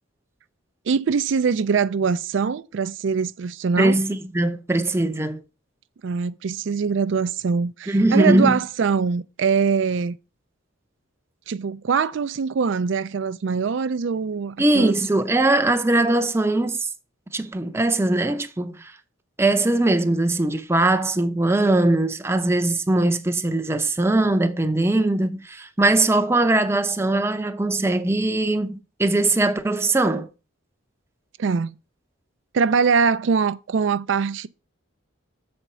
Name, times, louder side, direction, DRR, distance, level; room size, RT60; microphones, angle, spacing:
voice 1, 0.9-4.0 6.0-10.2 11.5-15.0 31.4-31.8 32.5-34.5, right 5 dB, 65° right, 0.4 m, -23 dB
voice 2, 3.8-5.4 7.9-8.6 14.6-16.9 17.3-18.9 19.4-30.3, right 2 dB, 15° right, 0.6 m, -21 dB
7.1 x 4.3 x 6.6 m
head